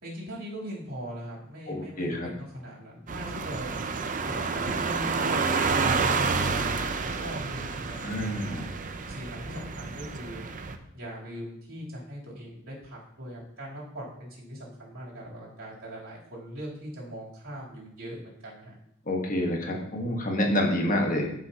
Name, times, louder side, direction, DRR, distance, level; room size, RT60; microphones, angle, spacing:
voice 1, 0.0-3.8 4.2-6.8 7.0-8.7 9.1-10.5 10.9-18.7, equal, 75° right, -6 dB, 3.4 m, -40 dB
voice 2, 1.7-2.3 8.0-8.7 19.1-21.3, left 1 dB, 40° left, 1 dB, 1.4 m, -28 dB
sound 1, 3.1-10.7, right 4 dB, 40° right, 0.6 m, -29 dB
13.0 x 5.6 x 2.9 m, 0.75 s
head